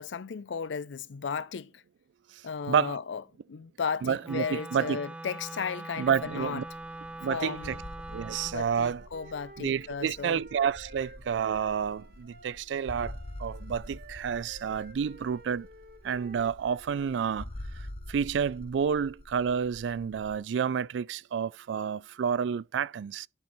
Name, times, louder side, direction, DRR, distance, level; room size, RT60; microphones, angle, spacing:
voice 1, 0.0-1.8 2.4-3.2 3.5-6.6 7.3-7.8 8.4-10.4, left 6 dB, 90° left, 0.5 m, -35 dB
voice 2, 2.7-3.0 4.0-5.0 6.0-6.6 7.2-7.8 8.1-9.0 9.6-15.7 16.0-23.3, right 7 dB, 85° right, 0.3 m, -30 dB
Wind instrument woodwind instrument, 4.2-8.6, right 2 dB, 5° right, 0.4 m, -42 dB
sound 1, 6.0-20.4, left 1 dB, 35° left, 0.8 m, -46 dB
Wind instrument woodwind instrument 2, 8.6-17.1, right 3 dB, 60° right, 1.1 m, -53 dB
11.0 x 4.4 x 4.1 m
head